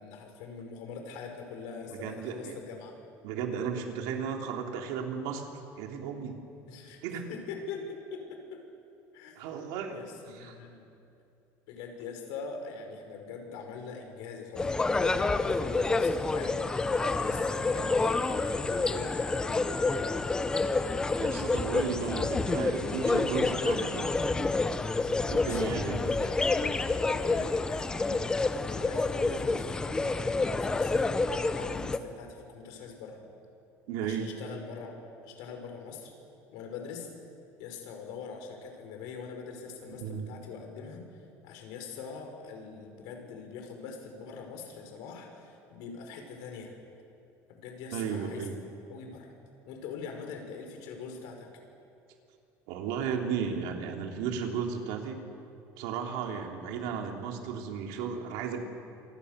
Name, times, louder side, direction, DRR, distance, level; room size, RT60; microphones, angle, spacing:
voice 1, 0.0-2.9 6.7-7.0 7.3-8.4 9.1-9.5 9.9-10.9 11.7-16.9 17.2-19.1 19.4-19.8 25.4-26.7 27.1-28.2 28.7-30.1 30.5-33.2 34.0-34.9 35.2-36.1 36.5-37.1 37.6-41.0 41.4-46.7 47.6-48.5 48.9-49.3 49.7-51.5, left 5 dB, 75° left, 3 dB, 5.7 m, -43 dB
voice 2, 1.9-2.6 3.2-6.3 7.0-7.3 9.4-10.0 10.4-10.6 21.2-24.5 25.3-26.1 33.9-34.3 40.0-40.3 47.9-48.6 52.7-55.2 55.8-58.6, right 6 dB, 80° right, 2 dB, 3.5 m, -34 dB
sound 1, 14.6-32.0, left 3 dB, 10° left, 0.8 m, -28 dB
27.5 x 25.5 x 6.9 m, 2.6 s
cardioid pair, 175°, 7 cm